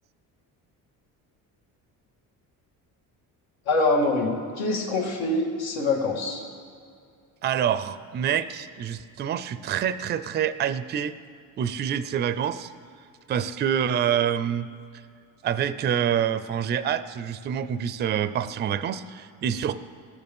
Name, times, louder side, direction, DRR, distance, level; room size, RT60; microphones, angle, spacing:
voice 1, 3.7-6.4, left 2 dB, 85° left, 1 dB, 2.0 m, -25 dB
voice 2, 7.4-11.1 11.6-12.7 13.3-14.7 15.4-19.7, right 9 dB, 30° right, 13 dB, 0.4 m, -26 dB
17.5 x 6.9 x 5.3 m, 2.3 s
cardioid pair, 130°, 36 cm